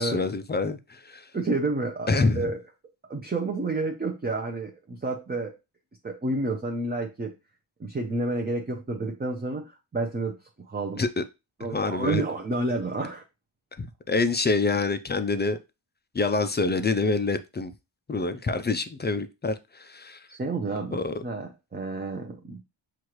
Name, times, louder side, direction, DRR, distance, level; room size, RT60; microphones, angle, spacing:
voice 1, 0.0-1.3 2.1-2.5 11.0-11.2 11.7-12.2 13.8-15.6 16.1-17.7 18.1-20.3 20.9-21.2, left 3 dB, 25° left, 0.3 m, -26 dB
voice 2, 1.3-2.6 3.1-5.6 6.0-7.3 7.8-10.3 10.7-11.0 11.6-13.2 20.3-22.6, right 2 dB, 20° right, 0.6 m, -30 dB
6.3 x 2.5 x 3.0 m
wide cardioid pair, 95°, 48 cm